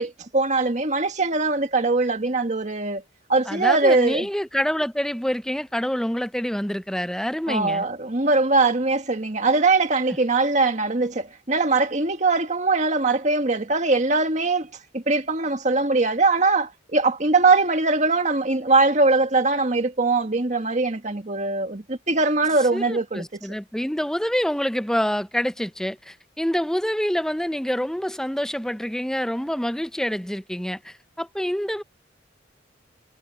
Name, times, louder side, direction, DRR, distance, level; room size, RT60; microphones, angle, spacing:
voice 1, 0.0-3.0 3.3-4.3 7.5-14.7 14.9-23.4, right 3 dB, 40° right, 1.8 m, -21 dB
voice 2, 3.5-7.9 22.7-31.8, equal, 5° left, 0.5 m, -26 dB
head